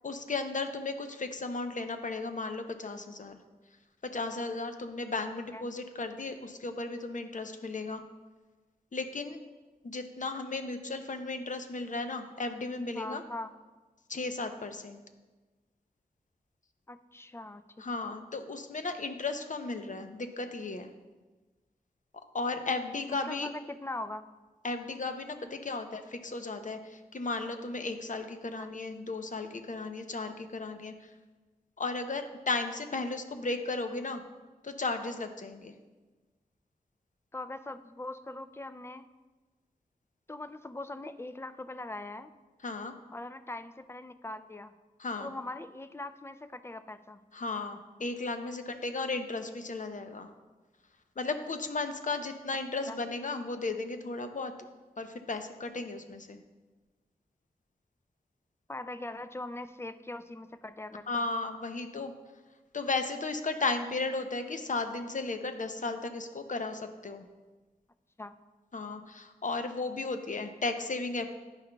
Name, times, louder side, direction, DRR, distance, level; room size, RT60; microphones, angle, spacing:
voice 1, 0.0-3.4 4.0-8.0 8.9-9.4 9.8-13.2 14.1-15.0 17.8-20.9 22.3-23.5 24.6-31.1 31.8-34.2 34.6-35.7 42.6-42.9 45.0-45.3 47.3-50.3 51.2-54.5 55.0-56.4 61.1-62.1 62.7-67.2 68.7-71.3, left 3 dB, 55° left, 7 dB, 0.6 m, -35 dB
voice 2, 13.0-13.5 16.9-17.8 23.1-24.3 28.6-28.7 37.3-39.1 40.3-42.3 43.1-44.7 45.2-47.2 52.9-53.0 58.7-61.2 68.2-68.3, left 2 dB, 15° left, 12 dB, 0.4 m, -41 dB
9.8 x 5.6 x 2.3 m, 1.3 s
cardioid pair, 40°, 16 cm